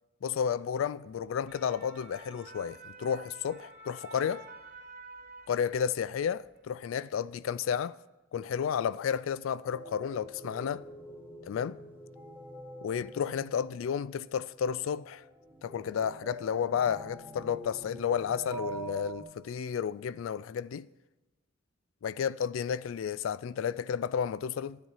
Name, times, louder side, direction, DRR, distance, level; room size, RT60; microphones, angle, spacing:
voice 1, 0.2-4.4 5.5-7.9 8.3-10.8 11.4-11.8 12.8-15.2 15.6-20.9 22.0-24.8, left 7 dB, 80° left, 0.3 m, -32 dB
sound 1, 1.2-6.0 6.3-6.6, right 3 dB, 50° right, 3.1 m, -49 dB
sound 2, 9.6-19.2, right 2 dB, 10° right, 2.1 m, -45 dB
12.5 x 10.5 x 5.6 m
head